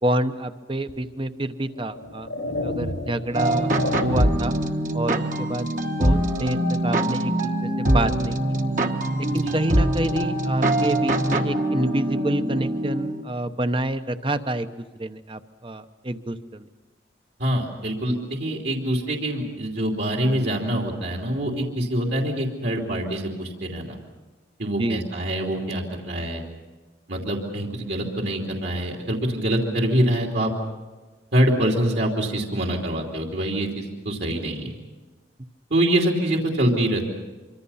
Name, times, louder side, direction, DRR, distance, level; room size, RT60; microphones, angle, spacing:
voice 1, 0.0-2.3 2.6-4.6 4.9-5.7 6.0-8.4 9.2-14.7 15.0-16.7 24.8-25.0, right 1 dB, 25° right, 10 dB, 0.9 m, -28 dB
sound 1, 0.9-1.0 1.8-4.5, left 1 dB, 90° left, 3.2 m, -31 dB
sound 2, 3.3-13.2, right 1 dB, 45° right, 1.5 m, -23 dB
voice 2, 17.4-24.0 24.6-26.4 27.1-30.5 31.3-34.7 35.7-37.1, right 1 dB, 65° right, 0 dB, 2.9 m, -25 dB
25.5 x 25.5 x 5.7 m, 1.3 s
head